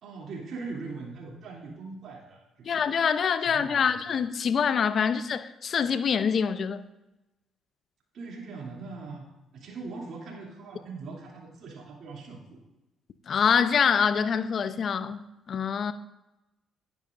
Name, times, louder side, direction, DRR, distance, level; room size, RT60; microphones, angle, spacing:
voice 1, 0.0-2.9 3.4-4.0 8.1-12.6, right 4 dB, 65° right, 2.7 m, -41 dB
voice 2, 2.7-6.8 13.3-15.9, left 6 dB, 55° left, 0.6 m, -25 dB
11.0 x 10.5 x 2.5 m
supercardioid pair, 60°, 0 cm